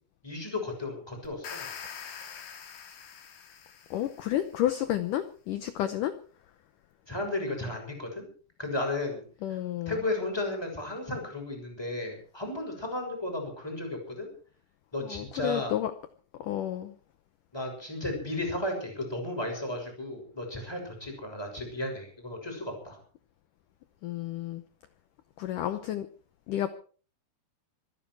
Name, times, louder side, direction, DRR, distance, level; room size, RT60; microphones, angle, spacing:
voice 1, 0.2-1.7 7.1-8.3 8.6-9.2 9.9-14.3 14.9-15.7 17.5-23.0, left 2 dB, 5° left, 1 dB, 6.1 m, -34 dB
sound 1, 1.2-4.4, left 7 dB, 65° left, 4.0 m, -44 dB
voice 2, 2.1-2.5 3.9-6.1 9.4-10.0 15.0-15.9 16.4-16.9 24.0-24.6 25.4-26.1 26.5-26.7, left 12 dB, 90° left, 11 dB, 1.8 m, -31 dB
25.0 x 10.5 x 4.7 m, 0.41 s
omnidirectional pair, 4.9 m